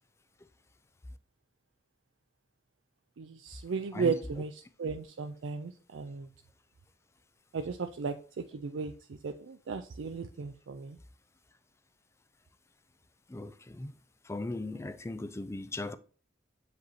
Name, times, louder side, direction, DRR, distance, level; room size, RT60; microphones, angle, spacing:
voice 1, 3.2-6.3 7.5-11.0, right 5 dB, 75° right, 0.4 m, -35 dB
voice 2, 13.3-13.9 14.2-16.0, left 2 dB, 15° left, 0.4 m, -38 dB
7.8 x 5.1 x 2.7 m
head